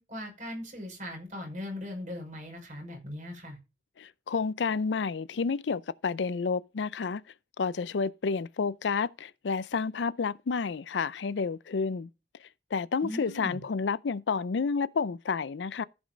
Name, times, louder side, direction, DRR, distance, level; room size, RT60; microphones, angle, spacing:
voice 1, 0.0-3.6 13.0-13.6, left 1 dB, 45° right, 5.6 m, -39 dB
voice 2, 4.0-7.2 7.6-12.1 12.7-15.8, left 5 dB, 85° left, 0.5 m, -30 dB
14.5 x 5.3 x 5.2 m
head